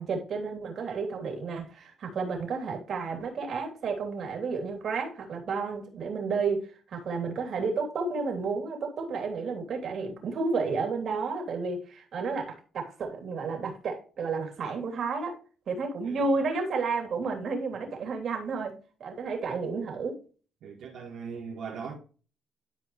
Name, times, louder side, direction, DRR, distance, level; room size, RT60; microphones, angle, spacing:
voice 1, 0.0-15.3 15.7-18.7 19.0-20.2, right 4 dB, 60° right, 3.1 m, -31 dB
voice 2, 20.6-21.9, right 6 dB, 80° right, 2.1 m, -39 dB
12.0 x 4.8 x 3.1 m
cardioid pair, 90°, 0 cm